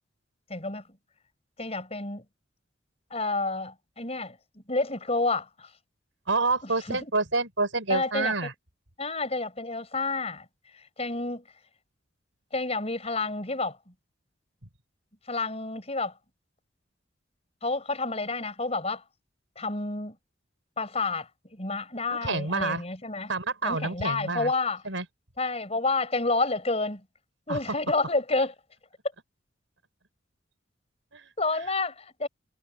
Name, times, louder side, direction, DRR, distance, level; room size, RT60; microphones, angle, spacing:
voice 1, 0.5-0.8 1.6-2.2 3.1-5.7 6.9-7.1 7.9-8.3 9.0-10.4 11.0-11.4 12.5-13.9 15.3-16.1 17.6-19.0 19.6-20.2 20.8-23.3 23.6-24.8 25.4-27.0 27.5-28.5 31.4-32.3, left 3 dB, 35° left, 5.1 m, -29 dB
voice 2, 6.3-8.5 22.1-22.8 23.3-24.5 24.9-25.1 27.5-27.6 31.1-31.3, right 3 dB, 85° right, 5.2 m, -28 dB
head